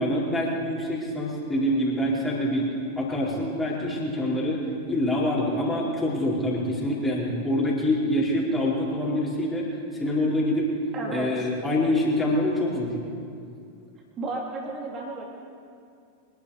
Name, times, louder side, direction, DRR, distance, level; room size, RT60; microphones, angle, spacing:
voice 1, 0.0-2.7 3.0-10.7 11.1-12.9, left 1 dB, 10° left, -6 dB, 4.8 m, -25 dB
voice 2, 10.9-11.5 14.2-15.3, right 2 dB, 30° right, 0 dB, 3.3 m, -33 dB
25.0 x 11.0 x 5.1 m, 2.4 s
figure-of-eight pair, 90°, 0 cm